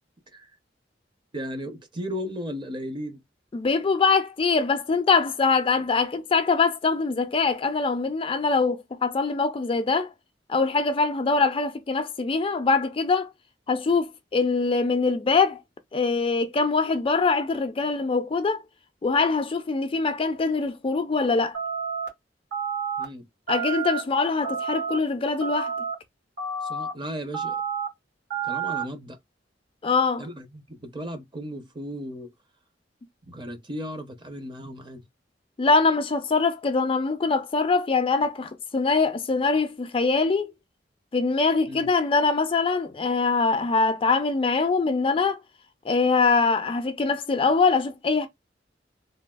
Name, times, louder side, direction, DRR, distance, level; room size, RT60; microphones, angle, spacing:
voice 1, 1.3-3.2 23.0-23.2 26.6-27.6 28.4-29.2 30.2-32.3 33.3-35.0 41.7-41.9, equal, 25° right, 0.6 m, -35 dB
voice 2, 3.5-10.1 10.5-13.3 13.7-15.6 15.9-18.6 19.0-21.6 23.5-25.7 29.8-30.2 35.6-40.5 41.1-45.4 45.9-48.3, left 4 dB, 30° left, 0.4 m, -23 dB
sound 1, 21.5-22.1 22.5-23.0 23.5-24.0 24.4-25.0 25.4-25.9 26.4-26.9 27.3-27.9 28.3-28.8, right 6 dB, 65° right, 1.4 m, -29 dB
3.2 x 2.3 x 2.2 m
head